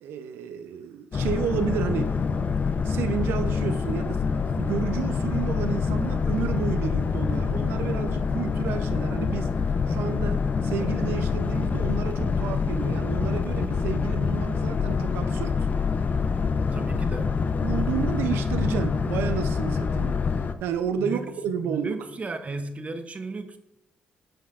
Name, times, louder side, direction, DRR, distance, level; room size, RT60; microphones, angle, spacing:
voice 1, 0.0-2.2 2.8-9.5 9.9-15.7 17.6-20.2 20.6-21.9, right 8 dB, 80° right, 0.5 m, -31 dB
Boat Water vehicle, 1.1-20.5, left 5 dB, 45° left, 0.5 m, -26 dB
voice 2, 16.7-17.4 21.0-23.6, right 3 dB, 35° right, 0.8 m, -34 dB
8.7 x 7.2 x 2.4 m
supercardioid pair, 60°, 4 cm